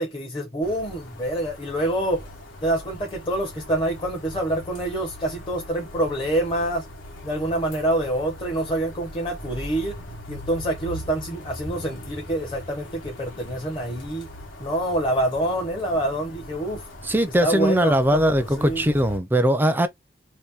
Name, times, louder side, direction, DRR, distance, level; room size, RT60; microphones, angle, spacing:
voice 1, 0.0-2.3 2.6-6.8 7.2-9.9 10.3-14.3 14.6-16.9 17.4-18.8, right 1 dB, 25° left, 0.7 m, -26 dB
sound 1, 0.6-19.2, equal, 85° left, 1.2 m, -40 dB
voice 2, 17.0-19.9, equal, 10° right, 0.4 m, -20 dB
2.8 x 2.5 x 3.5 m
head